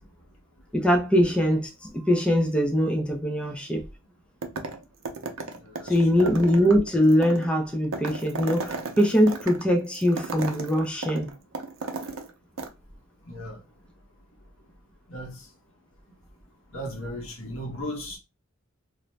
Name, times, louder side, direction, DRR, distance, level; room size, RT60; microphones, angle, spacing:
voice 1, 0.7-3.8 5.9-11.3, equal, 5° left, 0.4 m, -22 dB
sound 1, 4.4-4.8 5.1-12.3 12.6-12.7, right 3 dB, 85° right, 0.5 m, -35 dB
voice 2, 5.6-6.2 13.3-13.6 15.1-15.5 16.7-18.2, equal, 75° left, 1.0 m, -36 dB
2.5 x 2.1 x 3.1 m
head